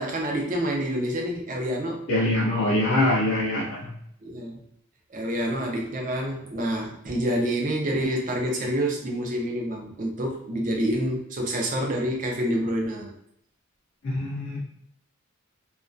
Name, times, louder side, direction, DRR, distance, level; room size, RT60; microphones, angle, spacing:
voice 1, 0.0-2.1 4.2-4.6 5.1-13.1, equal, 35° right, 1 dB, 0.5 m, -27 dB
voice 2, 2.1-3.9 14.0-14.6, left 1 dB, 55° left, -3 dB, 0.5 m, -24 dB
2.2 x 2.2 x 2.5 m, 0.71 s
head